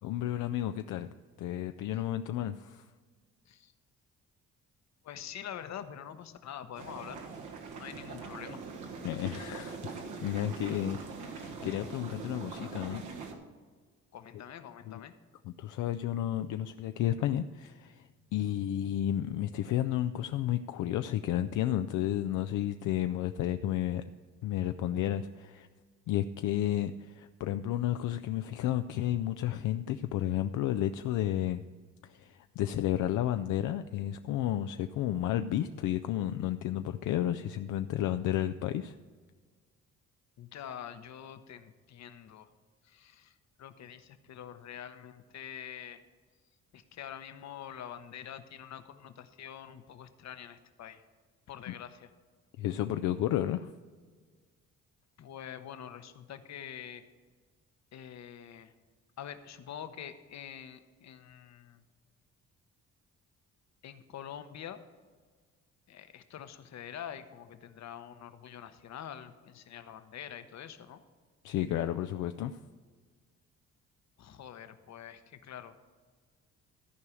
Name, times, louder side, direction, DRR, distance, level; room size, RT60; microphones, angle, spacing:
voice 1, 0.0-1.1 1.4-2.8 9.0-13.0 14.9-15.0 15.4-18.0 18.3-24.0 24.4-25.7 26.1-31.6 32.2-39.0 51.7-51.8 52.6-53.7 71.4-72.6, left 12 dB, 80° left, 9 dB, 0.5 m, -32 dB
voice 2, 5.0-7.2 7.7-8.6 14.1-15.1 40.4-42.5 42.9-46.0 46.7-51.0 51.5-52.1 55.2-57.0 57.9-58.7 59.2-61.8 63.8-64.8 65.9-71.0 74.2-75.7, left 9 dB, 60° left, 10 dB, 0.9 m, -45 dB
sound 1, 6.7-13.3, right 4 dB, 85° right, 1.4 m, -42 dB
14.0 x 4.8 x 7.0 m, 1.5 s
cardioid pair, 90°, 30 cm